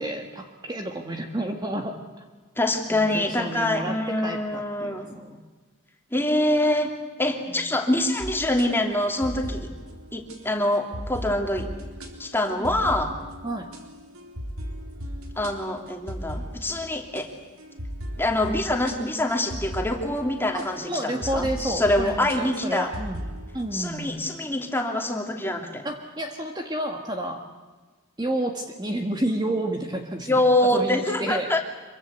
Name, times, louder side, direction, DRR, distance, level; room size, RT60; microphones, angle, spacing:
voice 1, 0.0-2.2 2.9-5.4 7.5-7.8 12.6-13.0 13.4-13.7 20.5-23.2 23.5-24.3 25.8-27.4 28.2-31.6, right 1 dB, 20° right, 4 dB, 1.6 m, -31 dB
voice 2, 2.6-5.2 6.1-6.9 7.2-9.7 10.1-11.7 12.2-13.1 15.4-17.3 18.2-22.9 23.7-25.9 30.3-31.6, left 1 dB, 10° left, 3 dB, 2.8 m, -25 dB
sound 1, 8.2-24.0, equal, 80° right, 4.1 m, -37 dB
26.0 x 23.5 x 8.2 m, 1.3 s
head